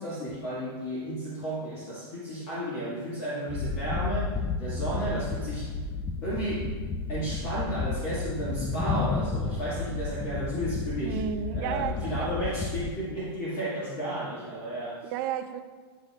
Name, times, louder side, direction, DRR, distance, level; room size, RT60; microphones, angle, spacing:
voice 1, 0.0-4.3 4.6-5.7 6.2-6.7 7.1-11.2 11.5-15.1, right 1 dB, 45° left, -8 dB, 1.8 m, -33 dB
sound 1, 3.5-12.9, left 4 dB, 15° left, 0.4 m, -32 dB
voice 2, 11.0-12.0 15.0-15.6, right 9 dB, 50° right, 8 dB, 0.5 m, -32 dB
10.0 x 4.2 x 2.4 m, 1.5 s
hypercardioid pair, 130°, 14 cm